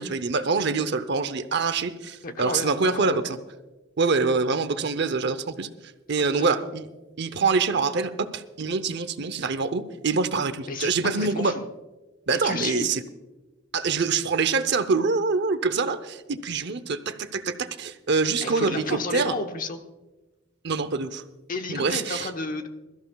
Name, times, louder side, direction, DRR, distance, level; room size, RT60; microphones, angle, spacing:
voice 1, 0.0-3.4 4.0-5.7 6.1-6.9 7.2-11.5 12.3-13.0 13.7-19.3 20.6-21.2 21.7-22.3, right 4 dB, 60° right, 12 dB, 0.7 m, -25 dB
voice 2, 2.2-3.2 6.3-6.5 10.7-11.6 12.4-12.9 18.4-19.8 21.5-22.7, left 3 dB, 45° left, 6 dB, 1.0 m, -32 dB
22.5 x 13.5 x 2.3 m, 1.1 s
head